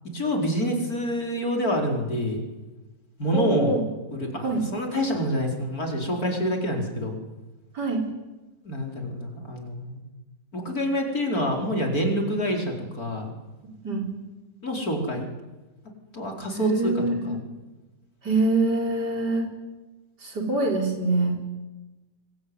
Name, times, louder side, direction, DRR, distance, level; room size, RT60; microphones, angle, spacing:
voice 1, 0.1-2.4 3.2-3.7 4.1-7.2 8.6-10.0 10.5-13.3 14.6-15.3 16.1-16.9 17.3-17.4, equal, 55° left, 2 dB, 5.2 m, -27 dB
voice 2, 3.3-3.8 4.4-4.7 7.7-8.0 13.8-14.1 16.6-17.4 18.2-19.5 20.2-21.4, right 2 dB, 70° right, 1 dB, 5.0 m, -25 dB
24.5 x 22.0 x 9.6 m, 1.1 s
omnidirectional pair, 1.9 m